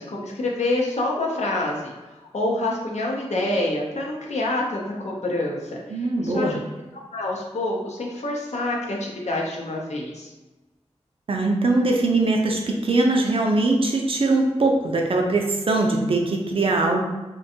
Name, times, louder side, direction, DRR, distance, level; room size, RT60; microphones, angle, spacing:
voice 1, 0.0-1.9 2.3-6.6 7.1-10.3, left 2 dB, 70° left, -2 dB, 0.6 m, -27 dB
voice 2, 5.9-6.6 11.3-17.0, right 2 dB, 50° right, 1 dB, 0.4 m, -21 dB
2.5 x 2.2 x 2.7 m, 1.1 s
wide cardioid pair, 70°, 12 cm